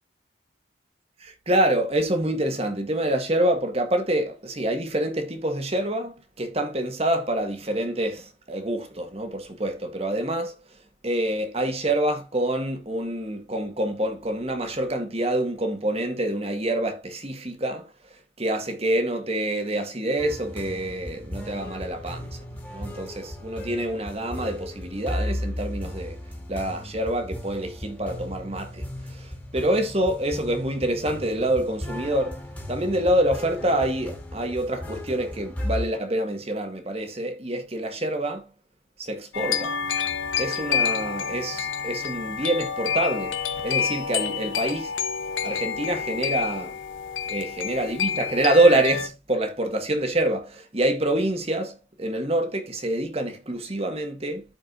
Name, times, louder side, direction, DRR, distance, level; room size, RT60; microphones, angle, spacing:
voice 1, 1.2-10.6 11.0-17.9 18.4-22.4 22.7-26.2 26.5-32.4 32.7-38.5 39.0-39.8 40.4-43.4 43.6-44.9 45.4-46.8 47.3-54.4, right 1 dB, 30° right, 1.6 m, -26 dB
sound 1, 20.2-35.9, left 1 dB, 10° left, 2.2 m, -35 dB
sound 2, 39.3-49.1, left 7 dB, 80° left, 0.9 m, -28 dB
14.0 x 4.8 x 2.5 m
head